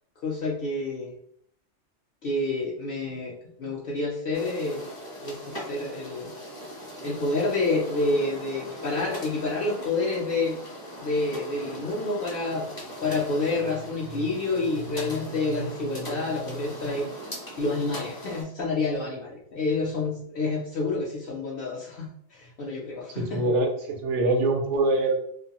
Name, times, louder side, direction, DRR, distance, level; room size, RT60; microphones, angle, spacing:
voice 1, 0.2-1.1 2.2-4.8 5.2-6.3 7.0-10.6 11.0-12.7 13.0-17.1 17.6-23.5, left 2 dB, 60° left, -4 dB, 0.7 m, -28 dB
sound 1, 4.3-18.4, equal, 25° left, 0.5 m, -40 dB
voice 2, 23.2-25.2, right 2 dB, 90° right, 3 dB, 0.9 m, -24 dB
2.4 x 2.2 x 2.8 m, 0.67 s
omnidirectional pair, 1.2 m